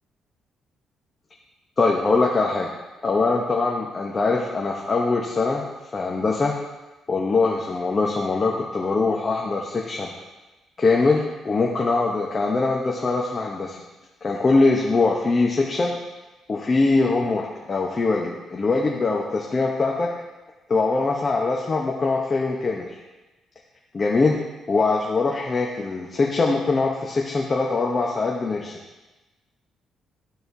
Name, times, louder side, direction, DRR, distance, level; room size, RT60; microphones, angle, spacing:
voice 1, 1.8-2.7 3.0-5.6 5.9-6.5 7.1-10.1 10.8-13.8 14.2-15.9 16.5-20.1 20.7-22.9 23.9-24.4 24.7-28.8, left 3 dB, 35° left, -1 dB, 0.8 m, -22 dB
13.0 x 4.4 x 2.7 m, 1.1 s
cardioid pair, 90°, 0 cm